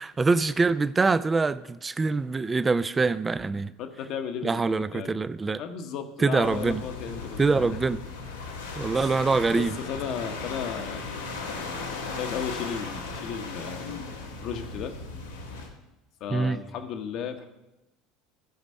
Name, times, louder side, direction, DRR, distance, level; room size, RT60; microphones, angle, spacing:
voice 1, 0.0-3.7 4.4-5.6 6.2-6.8 7.4-8.0 8.8-9.7 16.3-16.6, right 4 dB, 20° right, 15 dB, 0.4 m, -24 dB
voice 2, 3.8-5.2 5.6-7.8 9.0-9.1 9.5-11.3 12.0-14.0 14.4-14.9 16.2-17.5, left 7 dB, 55° left, 6 dB, 1.0 m, -35 dB
sound 1, 6.4-15.7, left 4 dB, 85° left, 1.3 m, -37 dB
14.5 x 5.1 x 5.5 m, 0.97 s
figure-of-eight pair, 70°, 0 cm